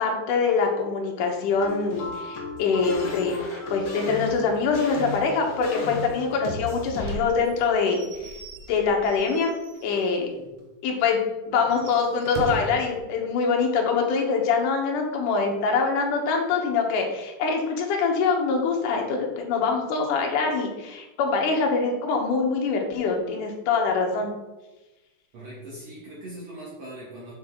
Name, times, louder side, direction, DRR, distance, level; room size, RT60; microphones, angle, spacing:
voice 1, 0.0-3.4 3.7-8.3 8.7-9.5 9.8-10.3 10.8-11.2 11.5-24.3, left 5 dB, 75° left, 1 dB, 2.5 m, -24 dB
sound 1, 1.5-7.3, left 3 dB, 55° left, 2.2 m, -34 dB
Slam / Squeak / Wood, 7.0-10.2 10.6-10.7 11.0-11.1 11.6-12.9, right 4 dB, 75° right, 2.0 m, -39 dB
voice 2, 25.3-27.3, right 1 dB, 55° right, -8 dB, 2.8 m, -40 dB
6.9 x 6.1 x 3.7 m, 1.1 s
omnidirectional pair, 3.7 m